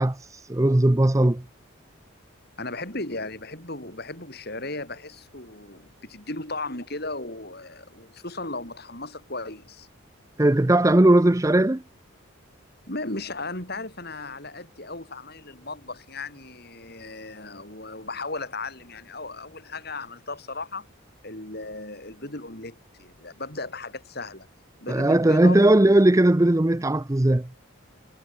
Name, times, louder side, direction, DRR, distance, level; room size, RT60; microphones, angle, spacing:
voice 1, 0.0-1.4 10.4-11.8 24.9-27.5, right 1 dB, 15° right, 0.5 m, -18 dB
voice 2, 2.6-9.9 12.9-20.9 21.2-24.5 24.8-25.9, left 2 dB, 50° left, 5.7 m, -36 dB
head